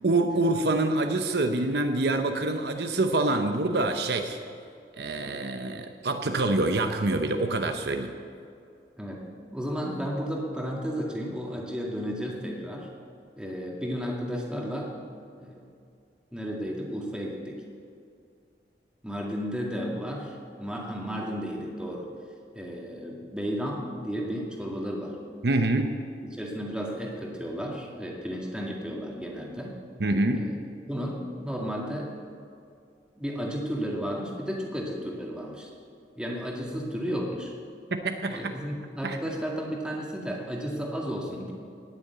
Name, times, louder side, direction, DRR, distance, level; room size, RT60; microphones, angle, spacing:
voice 1, 0.0-4.4 5.0-8.1 25.4-26.0 30.0-30.5 37.9-38.5 39.0-39.2, right 2 dB, 60° right, 6 dB, 0.8 m, -26 dB
voice 2, 9.5-12.9 13.4-14.9 15.4-15.6 16.3-17.6 19.0-22.1 22.5-25.2 26.3-29.8 30.3-30.5 30.9-32.1 33.2-35.7 36.2-37.5 38.3-41.5, equal, 5° right, -2 dB, 2.0 m, -33 dB
18.0 x 7.1 x 8.3 m, 2.4 s
head